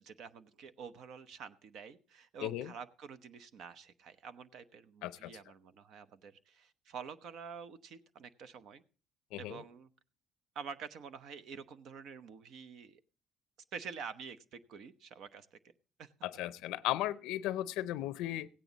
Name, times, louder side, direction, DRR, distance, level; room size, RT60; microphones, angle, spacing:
voice 1, 0.0-8.8 9.4-9.9 10.5-13.0 13.7-15.6 16.0-16.1, right 6 dB, 60° right, 12 dB, 0.9 m, -48 dB
voice 2, 2.4-2.7 5.0-5.3 9.3-9.6 16.2-18.5, left 14 dB, 85° left, 16 dB, 0.5 m, -36 dB
16.5 x 9.2 x 4.0 m, 0.39 s
cardioid pair, 135°, 0 cm